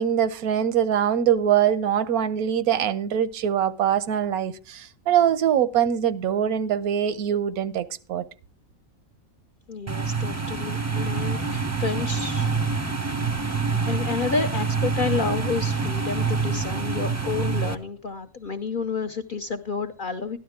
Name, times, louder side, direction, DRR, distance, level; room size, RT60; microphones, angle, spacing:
voice 1, 0.0-8.3, right 9 dB, 85° right, 1.2 m, -23 dB
voice 2, 9.7-12.5 13.5-20.4, left 5 dB, 50° left, 0.6 m, -30 dB
sound 1, 9.9-17.7, right 4 dB, 15° right, 0.6 m, -26 dB
13.0 x 11.0 x 3.6 m
omnidirectional pair, 1.5 m